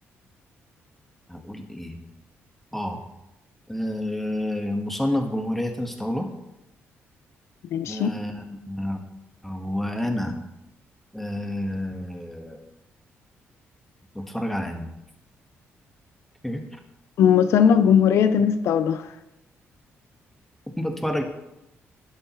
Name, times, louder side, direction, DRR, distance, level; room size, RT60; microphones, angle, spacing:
voice 1, 1.3-2.0 2.7-3.0 3.7-6.3 7.9-9.0 9.4-10.3 11.1-12.6 14.1-14.9 16.4-16.8 20.8-21.2, left 1 dB, 5° left, 4 dB, 1.5 m, -29 dB
voice 2, 7.7-8.1 17.2-19.1, left 8 dB, 80° left, 11 dB, 0.6 m, -18 dB
13.0 x 11.5 x 3.1 m, 0.91 s
cardioid pair, 115°, 5 cm